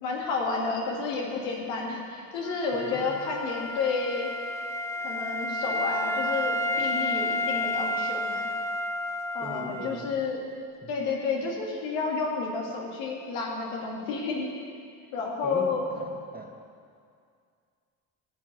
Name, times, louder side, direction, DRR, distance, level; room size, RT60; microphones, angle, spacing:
voice 1, 0.0-4.3 5.0-8.5 9.3-10.5 10.9-14.5 15.1-15.9, left 4 dB, 85° left, -1 dB, 1.8 m, -30 dB
Wind instrument woodwind instrument, 2.4-10.2, left 1 dB, 5° left, 0.5 m, -31 dB
voice 2, 2.7-3.2 9.4-10.2 10.8-10.9 15.4-16.6, right 1 dB, 20° right, 2 dB, 1.6 m, -40 dB
14.0 x 7.4 x 5.3 m, 2.3 s
supercardioid pair, 60°, 41 cm